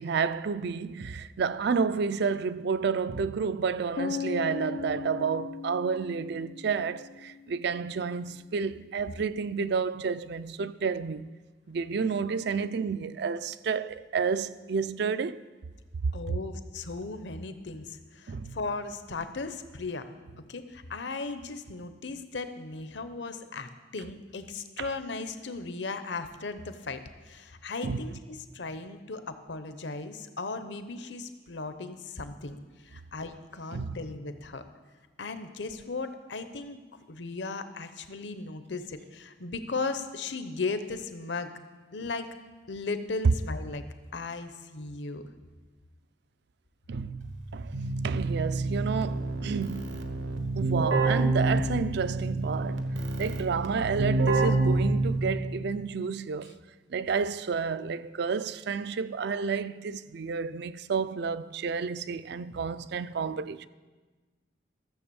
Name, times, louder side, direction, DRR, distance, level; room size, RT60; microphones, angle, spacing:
voice 1, 0.0-11.2 11.7-15.4 18.3-18.6 24.8-24.9 27.8-28.0 33.7-34.0 43.2-43.3 46.9-47.8 48.0-50.0 50.5-52.9 53.2-56.6 56.9-63.7, right 5 dB, 65° right, 0.4 m, -30 dB
sound 1, 4.0-7.9, left 6 dB, 50° left, 0.4 m, -38 dB
voice 2, 16.1-20.1 20.4-34.8 35.2-36.8 37.1-41.5 41.9-42.3 42.7-43.8 44.1-45.2, left 3 dB, 70° left, 0.9 m, -37 dB
Keyboard (musical), 47.2-55.5, right 2 dB, 80° right, 1.2 m, -28 dB
14.0 x 6.9 x 7.0 m
head